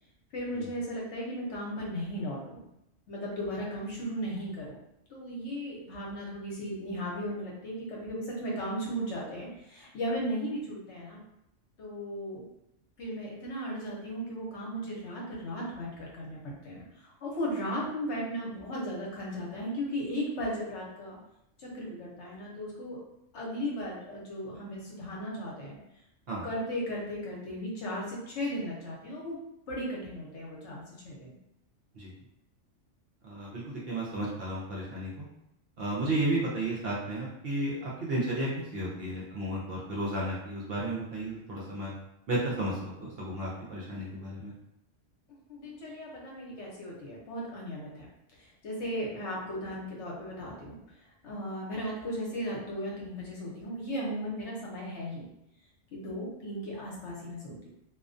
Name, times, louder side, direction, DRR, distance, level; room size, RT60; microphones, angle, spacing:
voice 1, 0.3-2.6 3.1-4.8 5.1-11.2 11.8-12.4 13.0-21.2 21.6-23.0 23.3-25.8 26.4-29.4 29.7-31.3 45.5-48.1 48.4-50.8 51.2-55.3 55.9-57.7, equal, 65° left, -4 dB, 1.0 m, -36 dB
voice 2, 33.2-35.2 35.8-41.9 42.3-44.5, right 1 dB, 60° right, -5 dB, 0.7 m, -33 dB
2.4 x 2.2 x 2.5 m, 0.82 s
omnidirectional pair, 1.3 m